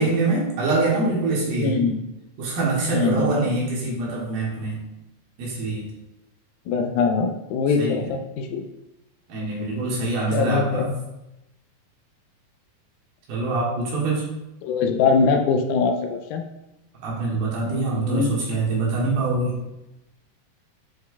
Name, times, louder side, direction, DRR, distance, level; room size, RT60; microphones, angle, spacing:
voice 1, 0.0-1.8 2.4-4.8 5.4-5.9 7.8-8.1 9.3-10.9 13.3-14.3 17.0-19.6, right 3 dB, 80° right, -5 dB, 3.5 m, -24 dB
voice 2, 1.6-2.0 2.9-3.5 6.7-8.6 10.3-11.0 14.6-16.5 17.6-18.3, left 4 dB, 80° left, 4 dB, 2.3 m, -22 dB
8.7 x 4.8 x 2.3 m, 0.93 s
omnidirectional pair, 4.2 m